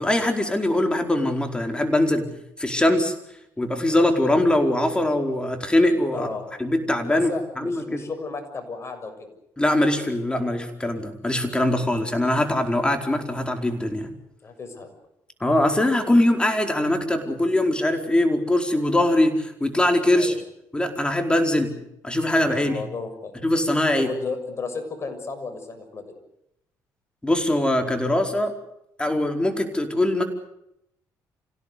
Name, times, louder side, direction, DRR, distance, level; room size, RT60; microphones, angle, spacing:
voice 1, 0.0-2.3 2.6-3.1 3.6-6.3 6.6-8.0 9.6-14.1 15.4-20.3 20.7-21.7 22.0-22.8 23.4-24.1 27.2-28.5 29.0-30.2, left 1 dB, 15° left, 5 dB, 4.6 m, -22 dB
voice 2, 6.1-6.5 7.0-9.3 14.4-14.9 20.1-20.4 22.6-23.3 24.0-26.1, left 4 dB, 40° left, 6 dB, 6.9 m, -33 dB
26.5 x 17.0 x 8.3 m, 0.79 s
cardioid pair, 80°, 7 cm